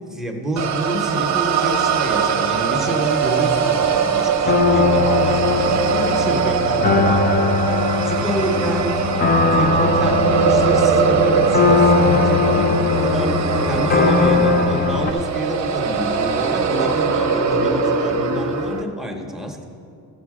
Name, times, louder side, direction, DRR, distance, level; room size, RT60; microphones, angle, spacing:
voice 1, 0.1-7.6 8.0-9.0 9.5-19.6, equal, ahead, 1 dB, 0.9 m, -28 dB
sound 1, 0.6-18.8, right 5 dB, 40° right, 0.8 m, -21 dB
sound 2, 4.5-15.1, left 4 dB, 20° left, 0.4 m, -20 dB
12.5 x 7.4 x 4.9 m, 2.3 s
cardioid pair, 145°, 43 cm